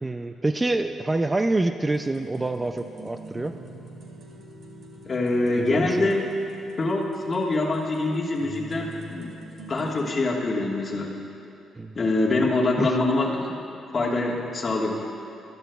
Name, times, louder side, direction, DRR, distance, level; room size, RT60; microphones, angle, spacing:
voice 1, 0.0-3.6 5.5-6.2 11.8-12.0 12.8-13.0, right 2 dB, 20° right, 8 dB, 0.3 m, -27 dB
sound 1, 1.9-10.1, right 1 dB, 60° right, 1.9 m, -44 dB
voice 2, 5.0-6.3 6.8-9.3 9.7-11.2 11.9-13.6 13.9-15.0, left 2 dB, 40° left, -1 dB, 1.4 m, -24 dB
13.0 x 13.0 x 2.3 m, 2.7 s
cardioid pair, 90°, 0 cm